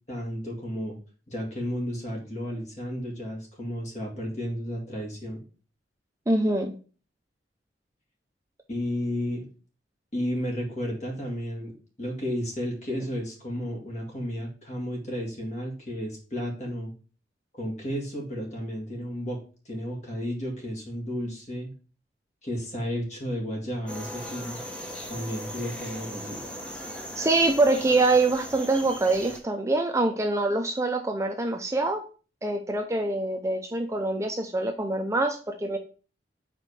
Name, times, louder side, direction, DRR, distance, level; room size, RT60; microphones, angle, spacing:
voice 1, 0.1-1.0 1.3-5.4 8.7-9.4 10.1-11.7 12.0-16.9 17.6-19.4 19.7-21.7 22.4-24.6 25.1-26.4, equal, 40° left, -1 dB, 2.1 m, -32 dB
voice 2, 6.3-6.8 27.2-32.0 32.4-35.8, right 2 dB, 15° right, 5 dB, 0.5 m, -25 dB
sound 1, 23.9-29.4, equal, 5° left, 0.9 m, -38 dB
5.0 x 4.2 x 4.8 m, 0.38 s
head